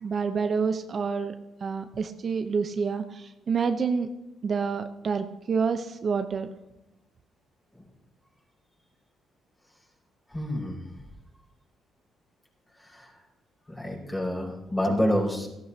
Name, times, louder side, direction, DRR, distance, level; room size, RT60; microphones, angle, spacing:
voice 1, 0.0-1.3 1.6-4.1 4.4-6.5, right 5 dB, 45° right, 7 dB, 0.8 m, -28 dB
voice 2, 10.3-10.8 12.8-13.1 13.7-15.5, equal, 20° left, -2 dB, 5.3 m, -28 dB
17.5 x 14.5 x 2.9 m, 0.94 s
cardioid pair, 90°, 0 cm